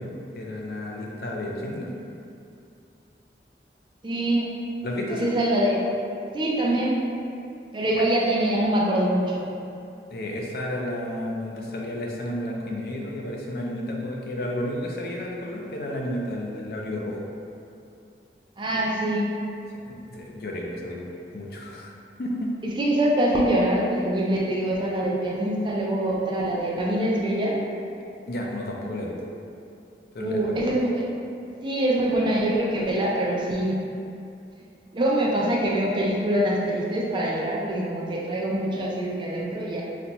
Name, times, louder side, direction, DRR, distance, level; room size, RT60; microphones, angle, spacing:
voice 1, 0.0-1.9 4.8-5.3 10.1-17.2 19.9-21.1 21.3-21.9 22.2-22.5 28.3-29.1 30.1-30.4, left 1 dB, 60° left, -1 dB, 0.4 m, -32 dB
voice 2, 4.0-4.5 5.1-5.8 6.3-7.0 7.7-9.5 18.6-19.3 22.6-27.6 30.2-31.1 31.6-33.8 34.9-39.8, right 1 dB, 25° right, -3 dB, 0.3 m, -24 dB
4.0 x 2.2 x 2.8 m, 2.5 s
head